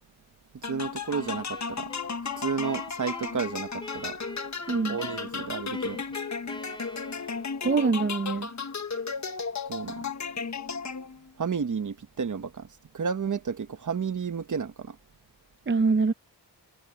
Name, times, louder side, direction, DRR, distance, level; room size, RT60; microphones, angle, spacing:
voice 1, 0.5-1.9 2.4-4.2 4.9-6.1 9.7-10.1 11.4-12.7 12.9-15.0, right 6 dB, 45° right, 1.3 m, -32 dB
sound 1, 0.6-11.3, left 5 dB, 40° left, 1.3 m, -35 dB
sound 2, 1.1-7.7, left 1 dB, 10° left, 3.5 m, -44 dB
voice 2, 4.7-5.0 7.6-8.5 15.7-16.1, right 4 dB, 25° right, 0.7 m, -24 dB
wide cardioid pair, 135°, 43 cm